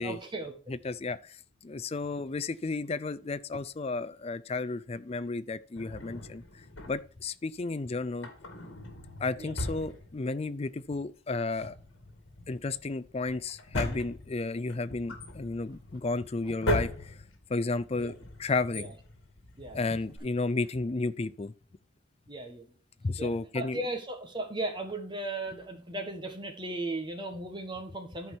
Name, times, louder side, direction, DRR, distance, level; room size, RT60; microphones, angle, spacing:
voice 1, 0.0-0.5 9.4-9.5 18.0-18.1 18.7-18.9 19.6-20.0 22.3-22.7 23.2-23.3 23.5-28.4, right 2 dB, 20° right, 1.5 m, -36 dB
voice 2, 0.7-1.4 1.6-6.4 6.9-8.3 9.2-11.8 12.5-17.2 17.5-18.9 19.7-21.5 23.0-23.8, left 3 dB, 30° left, 0.4 m, -33 dB
Drawer open or close, 5.7-7.3 8.1-10.6 10.9-11.0 11.4-20.2, left 1 dB, 65° left, 2.2 m, -38 dB
13.0 x 4.5 x 4.5 m
head